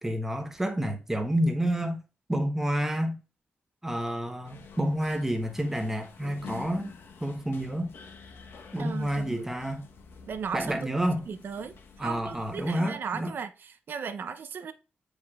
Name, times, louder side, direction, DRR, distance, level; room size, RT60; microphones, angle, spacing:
voice 1, 0.0-2.0 2.3-3.2 3.8-6.9 7.2-7.9 8.7-9.9 10.5-11.3 12.0-13.3, equal, 10° right, 1.0 m, -29 dB
sound 1, 4.4-12.7, left 5 dB, 90° left, 1.0 m, -48 dB
voice 2, 8.8-9.5 10.3-14.7, right 6 dB, 60° right, 0.6 m, -37 dB
9.1 x 5.0 x 2.4 m
wide cardioid pair, 170°, 4 cm